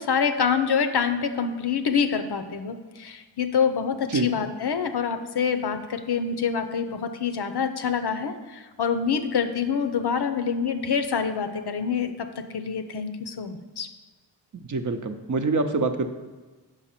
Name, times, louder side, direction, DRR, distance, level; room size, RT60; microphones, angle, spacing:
voice 1, 0.0-13.9, left 6 dB, 60° left, 9 dB, 0.6 m, -26 dB
voice 2, 14.7-16.1, right 3 dB, 45° right, 6 dB, 0.6 m, -25 dB
5.1 x 4.9 x 5.7 m, 1.3 s
cardioid pair, 45°, 44 cm